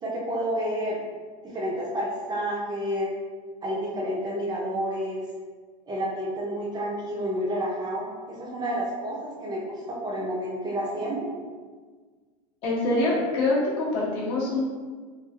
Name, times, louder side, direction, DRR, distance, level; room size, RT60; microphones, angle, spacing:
voice 1, 0.0-1.0 1.4-3.1 3.6-5.3 5.9-11.3, equal, 20° right, -4 dB, 0.6 m, -30 dB
voice 2, 12.6-14.7, left 2 dB, 55° left, -6 dB, 1.1 m, -25 dB
3.1 x 2.7 x 2.2 m, 1.5 s
hypercardioid pair, 110°, 20 cm